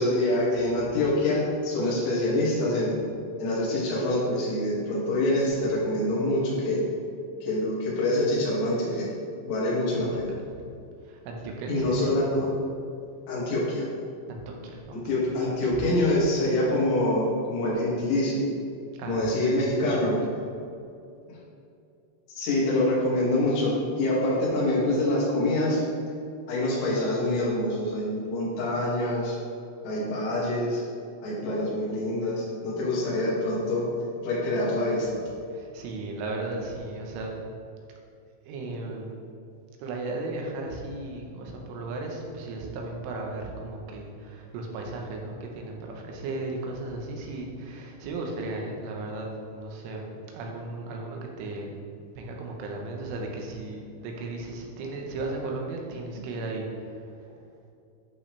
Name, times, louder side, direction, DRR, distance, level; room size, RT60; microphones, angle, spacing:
voice 1, 0.0-3.0 3.4-6.8 7.4-9.1 9.5-10.3 11.7-12.5 13.3-13.9 14.9-18.5 19.0-20.2 22.3-25.8 26.5-29.3 29.8-30.8 31.2-33.8 34.2-35.2, left 1 dB, 70° left, -7 dB, 4.6 m, -25 dB
voice 2, 9.9-10.6 11.1-12.2 14.3-15.0 15.2-15.8 19.0-19.5 19.9-20.1 35.5-37.3 38.5-39.1 39.8-51.8 52.2-57.0, right 2 dB, 80° right, 0 dB, 3.6 m, -36 dB
11.5 x 5.6 x 3.4 m, 2.5 s
omnidirectional pair, 5.7 m